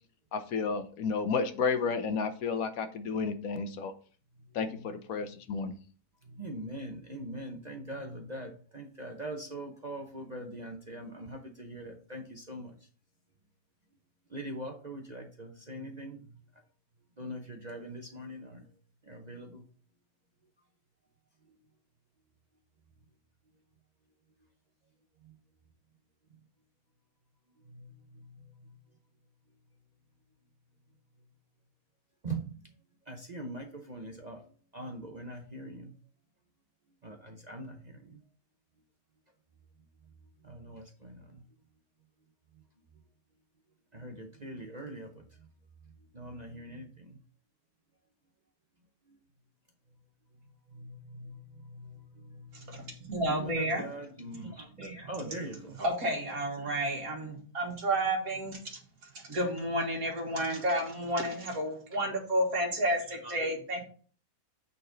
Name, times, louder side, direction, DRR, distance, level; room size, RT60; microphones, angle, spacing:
voice 1, 0.3-3.9 4.5-5.7, left 5 dB, 65° left, 9 dB, 1.2 m, -32 dB
voice 2, 6.4-12.7 14.3-16.2 17.2-18.6 19.1-19.6 32.2-32.4 33.1-34.4 34.7-35.9 37.0-38.2 40.4-41.2 43.9-45.1 46.1-46.9 50.7-51.4 51.7-51.9 52.7-52.9 53.3-55.8, right 1 dB, 40° right, 3 dB, 0.6 m, -42 dB
voice 3, 52.7-53.8 54.7-54.9 55.2-55.4 55.8-58.6 59.1-63.8, right 1 dB, 60° right, 0 dB, 2.3 m, -31 dB
8.7 x 4.1 x 3.9 m, 0.42 s
omnidirectional pair, 1.7 m